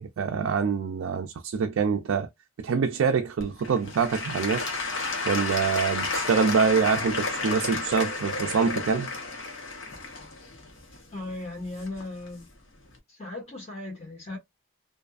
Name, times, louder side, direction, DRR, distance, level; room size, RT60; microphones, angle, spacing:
voice 1, 0.0-2.3 2.6-4.7 5.3-9.1, right 5 dB, 70° right, 0.4 m, -25 dB
Applause / Crowd, 3.4-12.3 12.9-13.0, left 3 dB, 60° left, 0.8 m, -32 dB
voice 2, 11.1-12.4 13.1-14.4, left 2 dB, 30° left, 1.3 m, -37 dB
2.5 x 2.4 x 2.4 m
head